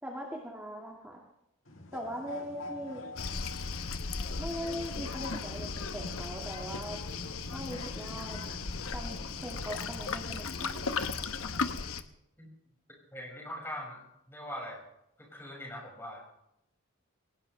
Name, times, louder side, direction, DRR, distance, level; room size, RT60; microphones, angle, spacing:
voice 1, 0.0-1.2 1.9-3.0 4.4-7.0 7.5-8.4 8.9-11.6, equal, 10° right, -2 dB, 2.0 m, -41 dB
sound 1, 1.7-10.6, left 2 dB, 70° left, 1.8 m, -46 dB
Waves surf, 3.2-12.0, left 4 dB, 85° left, 1.0 m, -36 dB
voice 2, 13.1-14.8 15.2-16.2, equal, 10° left, -1 dB, 5.9 m, -42 dB
22.0 x 18.5 x 3.3 m, 0.83 s
head